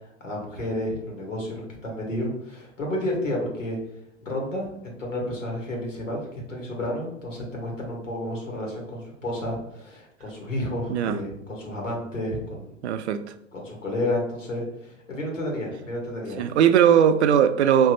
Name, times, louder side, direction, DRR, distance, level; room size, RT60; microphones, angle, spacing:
voice 1, 0.2-3.8 4.2-6.2 6.5-12.7 13.5-16.4, left 1 dB, 80° left, 1.7 m, -31 dB
voice 2, 10.9-11.2 12.8-13.2 16.4-17.9, right 9 dB, 60° right, 0.5 m, -19 dB
4.9 x 3.3 x 3.1 m
figure-of-eight pair, 100°, 37 cm